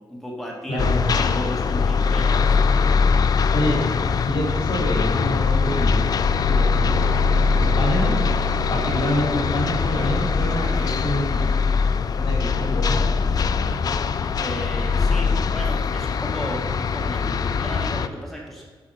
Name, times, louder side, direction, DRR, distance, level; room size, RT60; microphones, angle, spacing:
voice 1, 0.1-0.8 1.1-2.6 14.4-18.7, equal, ahead, -2 dB, 1.3 m, -34 dB
voice 2, 0.7-1.0 3.5-3.8 4.2-6.0 6.4-7.1 7.5-8.1 8.7-11.4 12.1-13.0, equal, 65° left, -2 dB, 2.4 m, -26 dB
sound 1, 0.8-18.1, left 5 dB, 50° left, 0.4 m, -21 dB
8.6 x 4.8 x 6.2 m, 1.3 s
wide cardioid pair, 125°, 9 cm